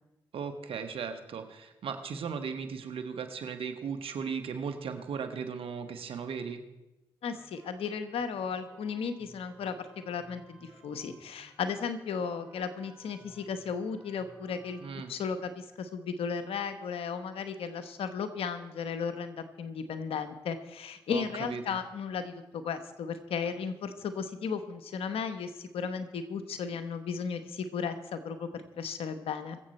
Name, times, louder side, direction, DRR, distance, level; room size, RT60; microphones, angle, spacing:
voice 1, 0.3-6.6 14.8-15.1 21.1-21.8, right 6 dB, 75° right, 8 dB, 1.4 m, -37 dB
voice 2, 7.2-9.8 10.0-14.8 15.1-29.6, left 6 dB, 80° left, 10 dB, 1.1 m, -35 dB
sound 1, 7.3-14.9, right 1 dB, 5° right, 4.4 m, -57 dB
23.0 x 7.7 x 4.3 m, 1.0 s
supercardioid pair, 45°, 10 cm